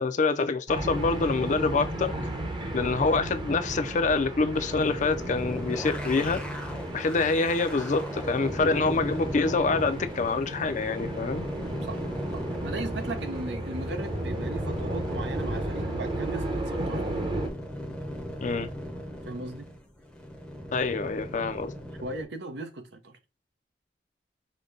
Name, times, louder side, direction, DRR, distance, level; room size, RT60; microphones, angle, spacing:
voice 1, 0.0-2.1 2.7-6.4 6.9-11.5 18.4-18.7 20.7-21.7, left 3 dB, 45° left, 0.5 m, -26 dB
sound 1, 0.7-17.5, right 1 dB, 25° right, 0.9 m, -34 dB
sound 2, 4.5-22.2, equal, 5° left, 0.7 m, -37 dB
voice 2, 12.3-17.0 19.3-19.7 22.0-23.2, right 2 dB, 75° right, 0.8 m, -37 dB
5.1 x 2.2 x 3.8 m
head